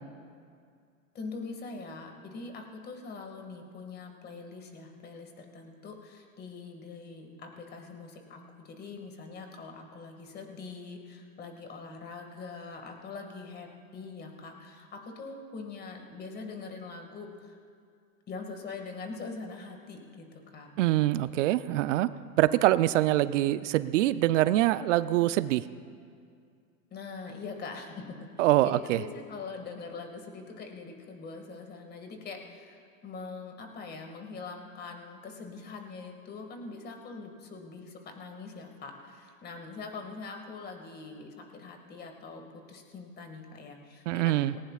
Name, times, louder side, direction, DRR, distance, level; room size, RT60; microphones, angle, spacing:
voice 1, 1.1-17.6 18.3-20.7 26.9-28.3 28.6-42.4 42.7-44.6, left 4 dB, 25° left, 3 dB, 2.0 m, -43 dB
voice 2, 20.8-22.1 22.4-25.6 28.4-29.0 44.1-44.5, right 15 dB, 60° right, 15 dB, 0.6 m, -24 dB
19.5 x 18.0 x 2.4 m, 2.2 s
hypercardioid pair, 120°, 42 cm